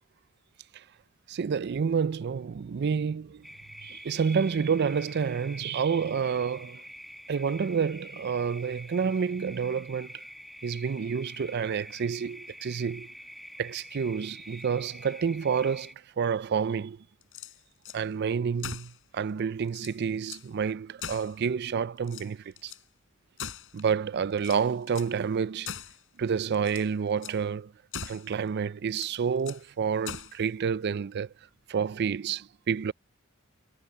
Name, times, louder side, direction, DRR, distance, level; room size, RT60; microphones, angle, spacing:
voice 1, 1.3-3.5 3.8-6.8 7.3-10.2 10.6-13.1 13.6-17.0 17.9-22.7 23.7-25.7 26.2-27.7 28.0-31.3 31.7-32.9, right 6 dB, 50° right, 0.4 m, -29 dB
sound 1, 3.4-15.9, equal, ahead, 1.7 m, -46 dB
sound 2, 17.2-18.0 18.6-19.0 19.4-19.5 19.7-20.5 21.0-21.7 22.0-22.8 23.4-24.0 24.4-25.2 25.7-26.0 26.5-26.9 27.2-27.4 27.9-28.3 28.9-29.7 30.1-30.4, left 7 dB, 65° left, 6.6 m, -41 dB
head